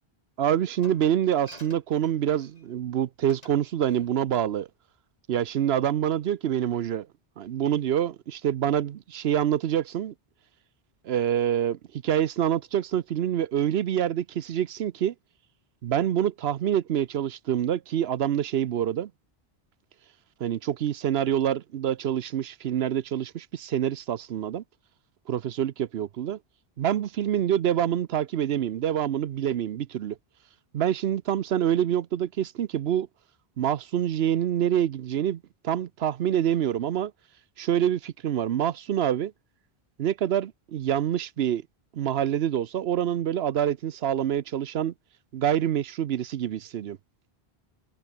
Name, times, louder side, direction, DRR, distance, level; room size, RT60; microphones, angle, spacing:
voice 1, 0.4-4.7 5.3-7.1 7.4-10.1 11.0-15.1 15.8-19.1 20.4-24.6 25.3-26.4 26.8-30.2 30.7-33.1 33.6-37.1 37.6-39.3 40.0-41.6 41.9-44.9 45.3-47.0, right 10 dB, 75° right, 0.9 m, -26 dB
Glass, 0.8-2.7 3.3-3.6 3.9-4.1, left 2 dB, 40° left, 3.3 m, -51 dB
omnidirectional pair, 1.1 m